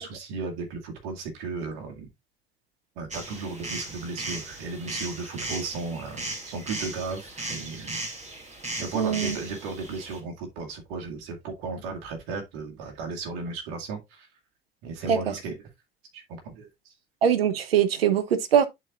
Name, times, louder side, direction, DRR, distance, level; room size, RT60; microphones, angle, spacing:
voice 1, 0.0-2.1 3.0-8.0 8.8-14.3 14.8-15.6 16.1-16.7, right 4 dB, 70° right, 2.3 m, -35 dB
sound 1, 3.1-10.2, right 2 dB, 25° right, 2.7 m, -37 dB
voice 2, 8.9-9.4 15.1-15.2 17.2-18.7, right 8 dB, 90° right, 0.7 m, -22 dB
10.5 x 4.3 x 2.5 m
hypercardioid pair, 60°, 29 cm